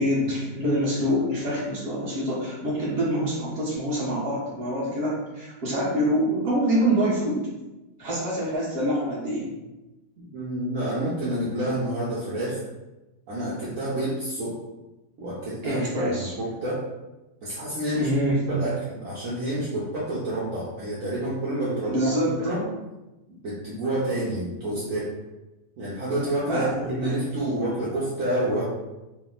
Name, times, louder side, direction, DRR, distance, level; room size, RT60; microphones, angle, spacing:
voice 1, 0.0-7.4 8.0-9.5 15.6-16.3 17.9-18.4 21.9-22.4 26.5-27.1, equal, 40° right, -7 dB, 1.4 m, -25 dB
voice 2, 10.2-12.6 13.3-14.6 15.2-16.8 17.4-18.1 18.5-22.1 22.4-22.6 23.4-25.1 25.8-28.7, right 1 dB, 65° right, -8 dB, 1.2 m, -28 dB
3.4 x 2.2 x 3.8 m, 1.0 s
omnidirectional pair, 1.7 m